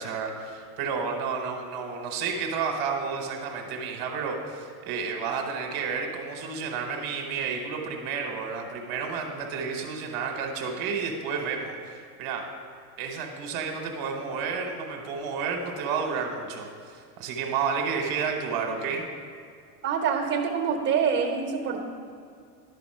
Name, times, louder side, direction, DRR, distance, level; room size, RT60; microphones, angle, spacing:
voice 1, 0.0-12.4 13.0-19.0, right 5 dB, 50° right, 2 dB, 1.2 m, -31 dB
voice 2, 19.8-21.8, right 6 dB, 25° right, 1 dB, 1.1 m, -26 dB
11.5 x 4.1 x 5.5 m, 2.3 s
supercardioid pair, 135°, 46 cm